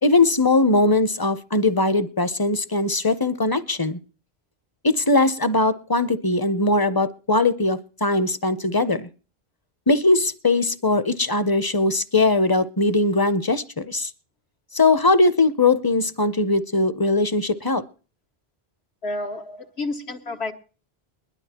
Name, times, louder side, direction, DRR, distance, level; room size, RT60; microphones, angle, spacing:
voice 1, 0.0-4.0 4.8-9.1 9.9-14.1 14.7-17.8, left 2 dB, 25° left, 0.5 m, -20 dB
voice 2, 19.0-20.5, left 2 dB, 85° left, 1.6 m, -30 dB
21.0 x 11.5 x 2.9 m
omnidirectional pair, 1.1 m